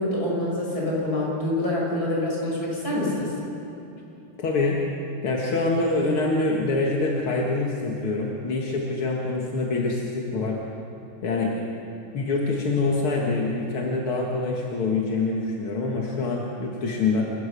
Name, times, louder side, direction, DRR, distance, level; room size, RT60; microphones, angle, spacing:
voice 1, 0.0-3.3, left 1 dB, 45° left, -4 dB, 6.6 m, -26 dB
voice 2, 4.4-4.8 5.2-10.6 11.2-11.5 12.1-17.2, left 3 dB, 80° left, -2 dB, 2.7 m, -25 dB
29.5 x 14.5 x 6.9 m, 2.9 s
omnidirectional pair, 2.3 m